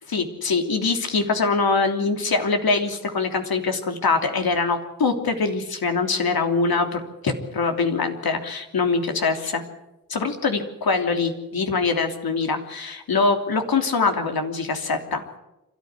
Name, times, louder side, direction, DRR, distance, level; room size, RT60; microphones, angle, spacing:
voice 1, 0.1-9.6 10.1-15.2, left 4 dB, 85° left, 5 dB, 3.1 m, -23 dB
27.5 x 14.0 x 9.7 m, 0.92 s
wide cardioid pair, 80°, 36 cm